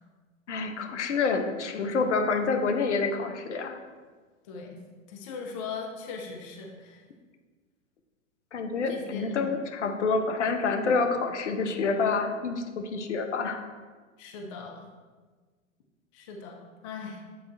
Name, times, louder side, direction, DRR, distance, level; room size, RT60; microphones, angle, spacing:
voice 1, 0.5-3.8 8.5-13.7, left 4 dB, 60° left, 5 dB, 0.8 m, -28 dB
voice 2, 4.4-4.8 5.1-7.0 8.9-9.5 14.2-14.9 16.1-16.6 16.8-17.2, left 5 dB, 25° left, 2 dB, 0.4 m, -39 dB
7.9 x 3.7 x 3.2 m, 1.4 s
figure-of-eight pair, 105°, 41 cm